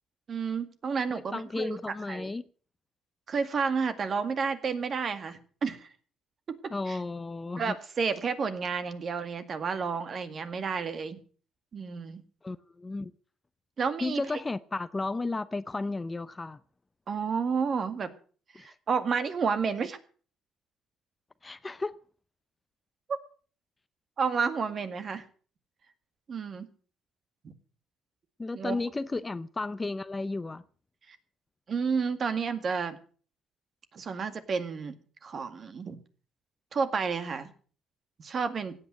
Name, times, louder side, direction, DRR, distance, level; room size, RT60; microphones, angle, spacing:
voice 1, 0.3-1.8 2.1-2.3 3.3-5.9 6.5-6.6 6.9-7.0 7.6-11.2 11.7-12.2 13.8-14.2 17.1-18.1 18.6-20.0 23.1-23.2 24.2-25.2 26.3-26.7 27.4-27.5 28.6-28.8 31.1-31.2 31.7-33.0 33.9-35.0 35.2-36.0 36.7-37.5 38.2-38.7, right 5 dB, 45° right, 2.0 m, -31 dB
voice 2, 1.1-2.4 6.7-7.7 12.4-13.1 14.0-16.6 18.5-18.8 21.4-22.0 28.4-30.6, left 3 dB, 20° left, 0.6 m, -33 dB
16.5 x 8.8 x 7.7 m
cardioid pair, 110°, 0 cm